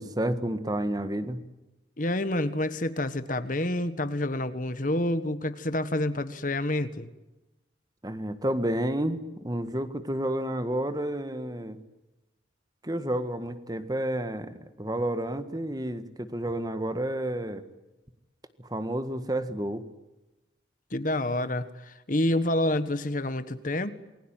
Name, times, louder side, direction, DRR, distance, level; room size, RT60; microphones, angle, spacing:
voice 1, 0.0-1.4 8.0-11.8 12.8-17.6 18.6-19.8, right 1 dB, 20° right, 10 dB, 1.7 m, -30 dB
voice 2, 2.0-7.1 20.9-23.9, left 1 dB, 45° left, 12 dB, 1.4 m, -28 dB
28.5 x 21.0 x 9.1 m, 1.0 s
head